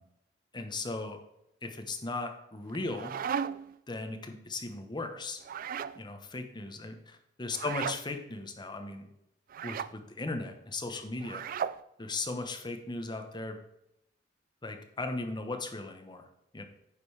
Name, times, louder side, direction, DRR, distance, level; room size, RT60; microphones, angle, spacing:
voice 1, 0.5-1.2 1.6-3.1 3.9-5.4 6.0-9.1 9.6-11.4 12.0-13.6 14.6-16.2 16.5-16.6, left 2 dB, 25° left, 5 dB, 1.1 m, -37 dB
sound 1, 2.7-3.8 5.4-6.0 7.5-8.0 9.5-9.9 11.2-11.8, right 7 dB, 50° right, 0.3 m, -35 dB
9.9 x 5.3 x 4.9 m, 0.82 s
head